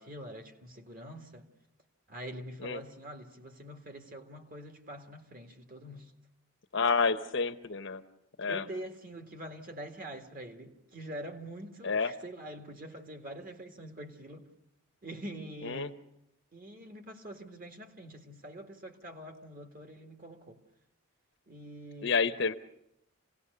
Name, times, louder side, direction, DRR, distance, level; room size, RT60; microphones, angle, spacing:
voice 1, 0.0-1.5 2.1-6.1 7.0-7.2 8.5-14.5 15.0-16.0 16.5-20.6 21.5-22.3, right 1 dB, 40° right, 1.9 m, -45 dB
voice 2, 6.7-8.0 8.4-8.7 11.8-12.1 15.6-15.9 22.0-22.5, left 4 dB, 55° left, 0.9 m, -29 dB
28.0 x 18.0 x 6.7 m
head